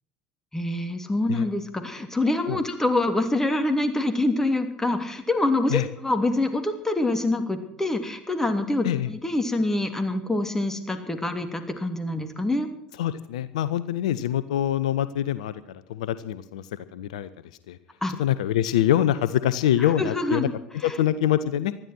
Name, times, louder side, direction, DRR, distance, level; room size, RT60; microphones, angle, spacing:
voice 1, 0.5-12.7 18.0-18.1 19.8-20.5 20.8-21.0, left 2 dB, 10° left, 8 dB, 3.1 m, -26 dB
voice 2, 13.0-15.5 15.9-16.6 16.9-17.3 17.7-17.8 18.2-20.5 20.8-21.7, left 11 dB, 75° left, 15 dB, 0.8 m, -24 dB
20.0 x 13.5 x 4.5 m, 0.72 s
hypercardioid pair, 65°, 4 cm